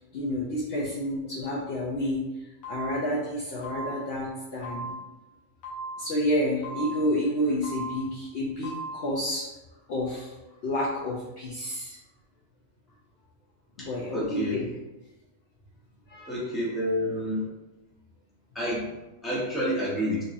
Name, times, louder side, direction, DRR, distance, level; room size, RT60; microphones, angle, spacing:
voice 1, 0.1-2.2 2.7-4.9 6.0-9.5 9.9-10.3 10.6-12.0 13.8-14.7 16.1-16.3, left 1 dB, 60° left, -4 dB, 0.7 m, -29 dB
sound 1, 2.6-3.2 3.6-4.2 4.6-5.2 5.6-6.2 6.6-7.2 7.6-8.2 8.6-9.2, right 2 dB, 90° left, 1.4 m, -38 dB
voice 2, 13.8-14.6 16.3-17.4 18.5-20.2, equal, ahead, -6 dB, 0.7 m, -29 dB
3.7 x 2.8 x 2.5 m, 1.0 s
omnidirectional pair, 1.4 m